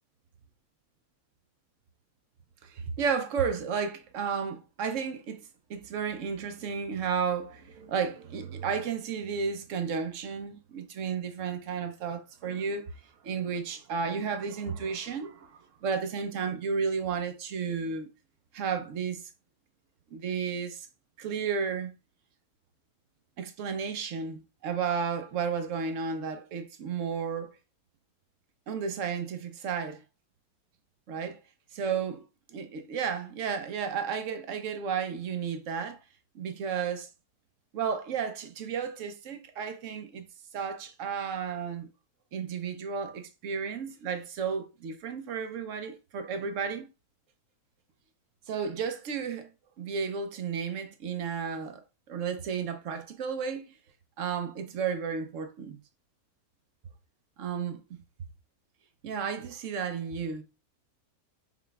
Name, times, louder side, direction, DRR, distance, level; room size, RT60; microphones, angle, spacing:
voice 1, 2.6-5.4 5.7-12.8 13.2-18.1 18.5-19.2 20.1-20.9 21.2-21.9 23.4-27.6 28.7-30.0 31.1-31.4 31.7-36.0 36.3-37.1 37.7-40.2 40.5-41.9 42.3-46.9 48.5-49.5 49.8-51.8 52.1-53.8 54.2-55.8 57.4-57.8 59.0-60.4, right 6 dB, 65° right, 1.0 m, -33 dB
5.9 x 3.5 x 2.2 m
omnidirectional pair, 1.6 m